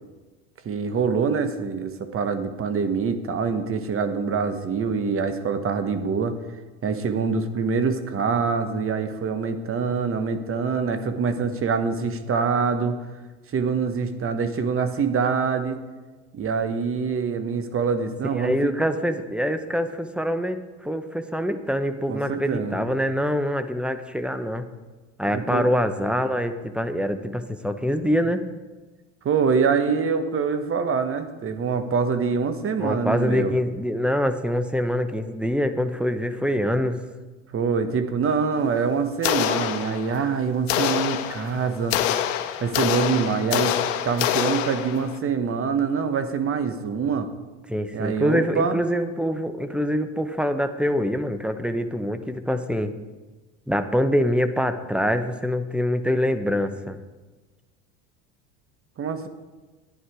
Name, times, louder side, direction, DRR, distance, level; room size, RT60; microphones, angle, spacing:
voice 1, 0.6-6.4 6.8-13.0 13.5-15.8 16.3-18.7 22.1-22.8 25.3-25.7 29.2-33.5 37.5-42.0 42.6-43.8 44.0-47.3 47.9-48.8 59.0-59.3, right 5 dB, 35° right, 9 dB, 1.2 m, -25 dB
voice 2, 18.3-24.6 25.2-28.5 32.8-37.0 47.7-52.9 53.7-57.0, equal, 5° right, 9 dB, 0.8 m, -25 dB
sound 1, 39.2-40.3 40.7-45.2, left 10 dB, 85° left, 0.9 m, -26 dB
11.0 x 9.9 x 4.8 m, 1.3 s
supercardioid pair, 90°, 38 cm